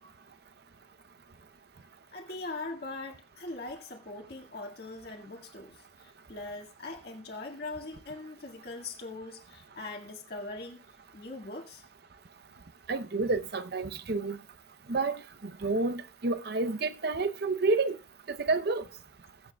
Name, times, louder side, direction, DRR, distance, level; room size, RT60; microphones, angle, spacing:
voice 1, 2.1-5.8 6.0-10.8 11.1-11.8, left 2 dB, 55° left, 1.8 m, -41 dB
voice 2, 12.9-14.4 14.9-18.0 18.3-18.8, right 3 dB, 55° right, 0.7 m, -29 dB
21.5 x 7.3 x 2.2 m
head